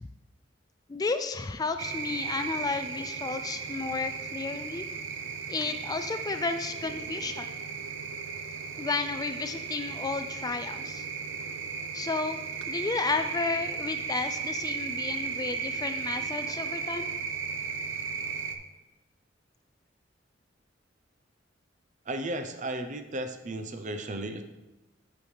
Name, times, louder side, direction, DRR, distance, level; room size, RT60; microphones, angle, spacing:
voice 1, 0.9-4.8 5.5-7.5 8.8-11.1 11.9-12.4 12.7-17.1, left 4 dB, 20° left, 9 dB, 0.3 m, -32 dB
sound 1, 1.8-18.6, right 5 dB, 90° right, 0.7 m, -35 dB
voice 2, 22.1-24.4, right 1 dB, 40° right, 8 dB, 0.6 m, -34 dB
8.2 x 7.1 x 3.3 m, 1.0 s
head